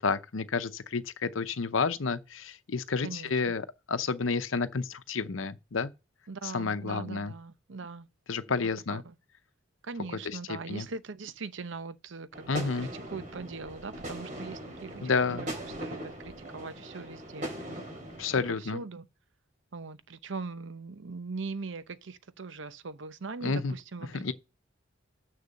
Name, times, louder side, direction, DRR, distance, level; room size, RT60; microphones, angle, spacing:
voice 1, 0.0-5.9 6.4-7.3 8.3-9.0 10.2-10.9 12.5-12.9 15.0-15.5 18.2-18.8 23.4-23.7 24.1-24.3, left 4 dB, 85° left, 0.8 m, -30 dB
voice 2, 6.3-8.1 8.5-9.1 9.8-15.1 15.6-17.5 18.6-19.1 19.7-24.3, right 4 dB, 70° right, 0.7 m, -41 dB
sound 1, 12.3-18.5, right 1 dB, 40° right, 2.9 m, -40 dB
6.8 x 6.6 x 6.5 m
head